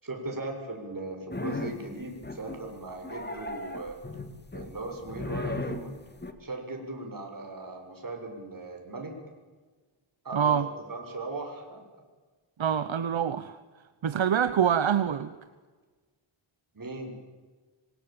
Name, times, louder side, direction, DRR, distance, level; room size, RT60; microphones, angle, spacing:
voice 1, 0.0-4.0 4.5-5.9 6.4-9.1 10.2-10.5 10.9-11.8 16.7-17.2, right 2 dB, 45° right, 3 dB, 6.8 m, -38 dB
sound 1, 1.3-1.9 2.2-2.7 3.0-6.3, left 2 dB, 20° left, 2.3 m, -36 dB
voice 2, 10.3-10.7 12.6-13.6 14.0-15.3, right 8 dB, 70° right, 12 dB, 1.1 m, -25 dB
25.5 x 24.0 x 9.0 m, 1.4 s
wide cardioid pair, 105°, 48 cm